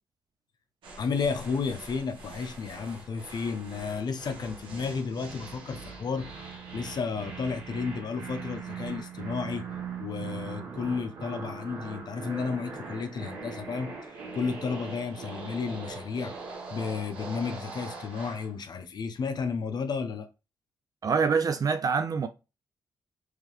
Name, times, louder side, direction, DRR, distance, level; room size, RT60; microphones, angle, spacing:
Wobbling Noises, 0.8-18.5, right 4 dB, 85° right, 1.0 m, -41 dB
voice 1, 1.0-9.6 10.0-16.3 16.7-20.3, left 5 dB, 55° left, 0.6 m, -32 dB
voice 2, 21.0-22.3, right 5 dB, 45° right, 0.4 m, -25 dB
3.6 x 3.2 x 3.1 m
cardioid pair, 60°, 8 cm